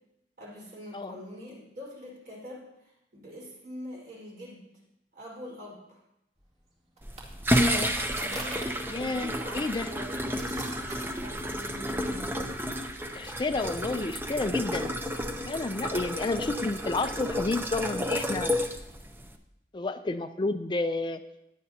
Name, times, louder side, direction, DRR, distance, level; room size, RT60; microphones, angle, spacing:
voice 1, 0.4-4.6 5.1-6.0 7.4-10.4 11.1-12.4, left 1 dB, 55° right, -3 dB, 4.5 m, -45 dB
sound 1, 6.4-14.9, right 2 dB, 35° right, 2.3 m, -48 dB
sound 2, 7.0-19.4, equal, 10° right, 0.6 m, -31 dB
voice 2, 7.5-7.9 8.9-9.9 13.1-14.9 15.5-18.5 19.7-21.2, left 3 dB, 25° left, 9 dB, 0.4 m, -30 dB
16.0 x 10.0 x 2.8 m, 0.85 s
head